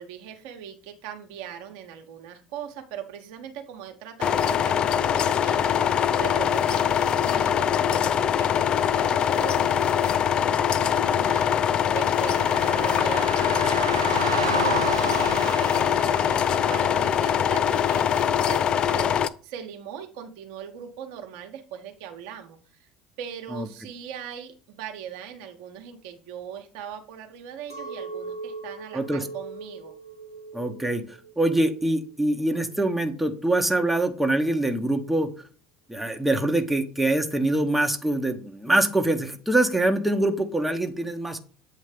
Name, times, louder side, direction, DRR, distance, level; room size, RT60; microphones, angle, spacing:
voice 1, 0.0-22.9 23.2-29.9, right 9 dB, 65° right, 4 dB, 1.1 m, -40 dB
sound 1, 4.2-19.3, left 9 dB, 40° left, 0.4 m, -23 dB
sound 2, 12.2-17.4, right 5 dB, 85° right, 0.5 m, -32 dB
Chink clink, 27.7-33.1, right 4 dB, 85° left, 1.3 m, -40 dB
voice 2, 28.9-29.3 30.5-35.3 35.9-41.4, right 1 dB, 5° right, 4 dB, 1.0 m, -24 dB
8.3 x 3.2 x 5.1 m, 0.41 s
figure-of-eight pair, 65°, 2 cm